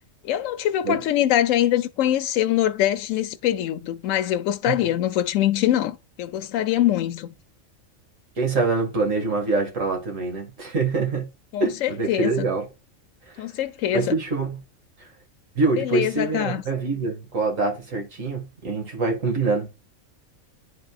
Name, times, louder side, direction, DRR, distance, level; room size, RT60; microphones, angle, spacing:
voice 1, 0.2-7.4 11.5-12.5 13.4-14.2 15.8-16.6, left 12 dB, 75° left, 1.0 m, -23 dB
voice 2, 8.4-11.3 11.6-12.7 13.3-13.4 13.9-14.6 15.6-19.7, right 3 dB, 75° right, 2.2 m, -25 dB
10.5 x 3.8 x 2.3 m
omnidirectional pair, 1.4 m